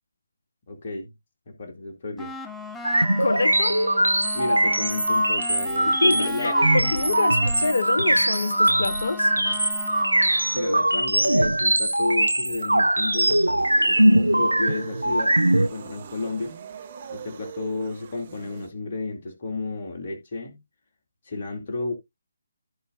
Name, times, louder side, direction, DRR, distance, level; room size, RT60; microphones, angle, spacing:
voice 1, 0.7-1.1 1.5-2.3 4.3-6.8 10.5-16.5 17.1-20.6 21.3-21.9, left 3 dB, 40° left, 2.6 m, -32 dB
sound 1, 2.2-11.0, left 3 dB, 5° left, 0.7 m, -38 dB
sound 2, 2.8-15.7, right 1 dB, 80° right, 0.5 m, -21 dB
voice 2, 3.2-3.8 6.0-9.3, left 3 dB, 60° left, 0.8 m, -26 dB
sound 3, 13.6-18.7, right 8 dB, 35° right, 1.1 m, -42 dB
15.0 x 5.0 x 2.6 m
figure-of-eight pair, 145°, 0 cm